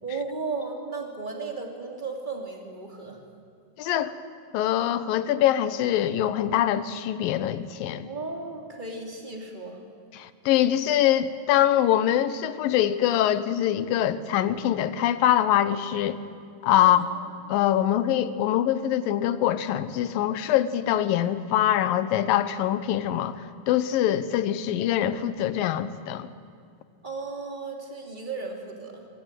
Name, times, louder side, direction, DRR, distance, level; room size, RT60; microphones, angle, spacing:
voice 1, 0.0-3.2 8.0-9.8 16.8-17.1 27.0-29.1, right 4 dB, 15° right, 2 dB, 2.8 m, -35 dB
voice 2, 3.8-4.1 4.5-8.1 10.2-16.2 16.6-17.1 17.5-26.3, left 11 dB, 75° left, 13 dB, 2.6 m, -24 dB
23.0 x 23.0 x 9.1 m, 2.3 s
omnidirectional pair, 4.3 m